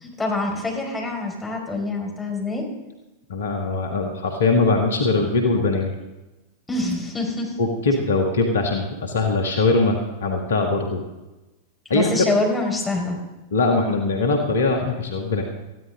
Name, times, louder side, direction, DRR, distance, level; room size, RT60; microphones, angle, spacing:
voice 1, 0.0-2.6 6.7-7.6 11.9-13.2, left 2 dB, 10° left, -1 dB, 5.0 m, -25 dB
voice 2, 3.3-5.9 7.6-11.0 11.9-12.3 13.5-15.4, left 3 dB, 65° left, 3 dB, 1.8 m, -21 dB
19.0 x 14.5 x 3.8 m, 1.0 s
figure-of-eight pair, 90°, 0 cm